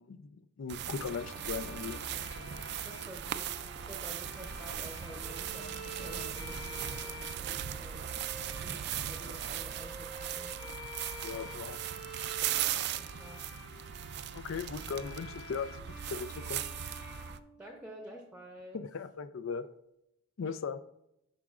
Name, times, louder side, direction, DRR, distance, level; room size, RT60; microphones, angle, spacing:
voice 1, 0.0-2.0 11.2-11.8 14.3-15.8 16.1-16.6 18.7-19.7 20.4-20.8, left 5 dB, 75° left, 12 dB, 0.4 m, -38 dB
sound 1, 0.7-17.4, right 10 dB, 55° right, 0.3 m, -38 dB
Bowed string instrument, 0.8-18.1, left 1 dB, 55° left, 1.2 m, -49 dB
sound 2, 0.8-8.7, right 1 dB, 90° right, 0.9 m, -50 dB
voice 2, 2.8-8.2 8.5-10.6 13.0-13.4 17.6-18.8 20.5-20.6, right 1 dB, 5° right, 1 dB, 0.7 m, -50 dB
13.0 x 4.7 x 2.4 m, 0.81 s
head